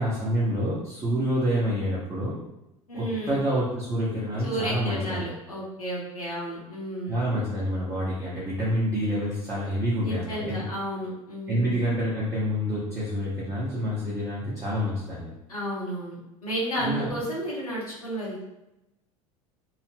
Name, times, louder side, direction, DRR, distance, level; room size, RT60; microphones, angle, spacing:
voice 1, 0.0-2.4 2.9-5.2 7.1-10.6 11.5-15.3 16.8-17.1, equal, 15° right, -8 dB, 0.9 m, -27 dB
voice 2, 2.9-3.4 4.4-7.3 10.0-11.8 15.5-18.4, right 1 dB, 75° left, -6 dB, 1.0 m, -32 dB
2.8 x 2.1 x 3.2 m, 0.92 s
figure-of-eight pair, 75°, 19 cm